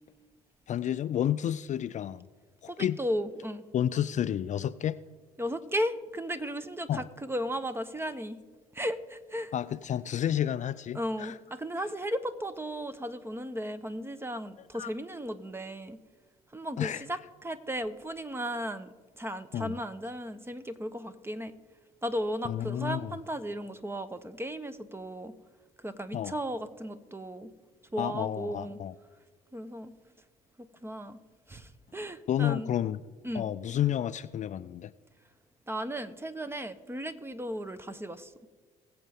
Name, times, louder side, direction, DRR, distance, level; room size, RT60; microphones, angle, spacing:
voice 1, 0.7-2.3 2.6-3.0 3.7-5.0 6.9-7.0 9.5-11.4 14.8-14.9 16.8-17.0 19.5-19.7 22.4-23.2 26.1-26.3 28.0-28.9 32.3-33.0 33.3-34.9, left 10 dB, 45° left, 14 dB, 0.4 m, -30 dB
voice 2, 2.7-3.6 5.4-8.4 8.7-9.5 10.9-16.0 16.5-21.5 22.0-25.3 25.8-27.5 27.9-28.8 29.5-29.9 30.6-31.2 31.5-32.7 33.2-33.4 35.7-38.3, equal, 15° right, 12 dB, 1.0 m, -35 dB
21.0 x 7.8 x 3.6 m, 1.4 s
hypercardioid pair, 55°, 18 cm